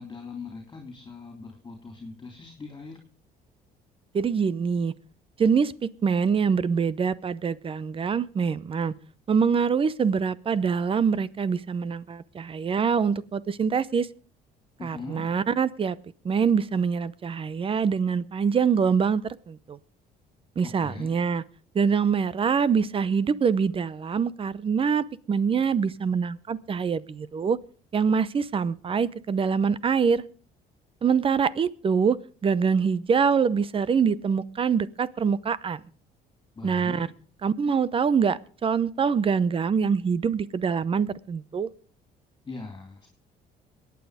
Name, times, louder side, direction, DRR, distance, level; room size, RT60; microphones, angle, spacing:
voice 1, 0.0-3.0 14.8-15.3 20.6-21.1 36.6-37.0 42.5-43.1, left 4 dB, 25° left, 4 dB, 3.4 m, -40 dB
voice 2, 4.1-4.9 5.4-8.9 9.3-14.1 14.8-16.0 16.2-19.8 20.6-21.4 21.7-27.6 27.9-30.2 31.0-35.8 36.6-37.1 37.4-41.7, right 6 dB, 30° right, 20 dB, 0.7 m, -24 dB
22.5 x 9.4 x 5.0 m, 0.41 s
cardioid pair, 110°, 17 cm